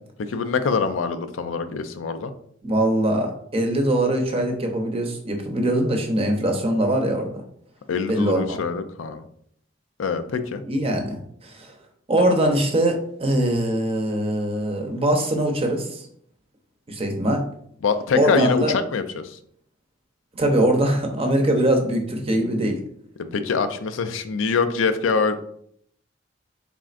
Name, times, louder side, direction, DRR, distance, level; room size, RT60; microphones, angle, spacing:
voice 1, 0.2-2.3 7.9-9.2 10.0-10.6 17.8-19.4 23.2-25.4, left 5 dB, 90° left, 10 dB, 0.4 m, -24 dB
voice 2, 2.6-7.3 8.1-8.6 10.6-11.8 12.1-16.1 16.9-17.4 18.1-18.7 20.3-22.8, right 1 dB, 30° right, 4 dB, 0.7 m, -22 dB
4.2 x 3.6 x 2.5 m, 0.66 s
head